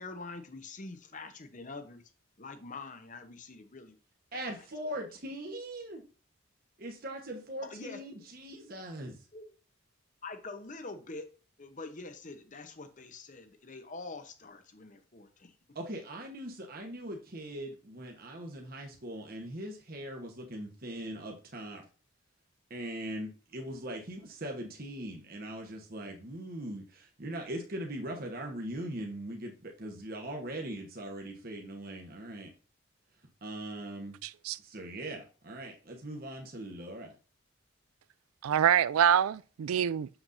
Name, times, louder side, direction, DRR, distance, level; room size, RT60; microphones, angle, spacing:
voice 1, 0.0-2.0 2.4-4.0 4.3-4.6 7.6-8.0 9.3-9.5 10.2-11.3 11.6-15.5, left 3 dB, 35° left, 0.8 m, -45 dB
voice 2, 4.3-6.0 6.8-9.2 15.7-21.8 22.7-32.5 33.4-34.2 34.6-37.1, right 1 dB, 45° right, 1.1 m, -40 dB
voice 3, 34.2-34.6 38.4-40.1, right 9 dB, 90° right, 0.3 m, -26 dB
7.1 x 6.0 x 2.6 m
head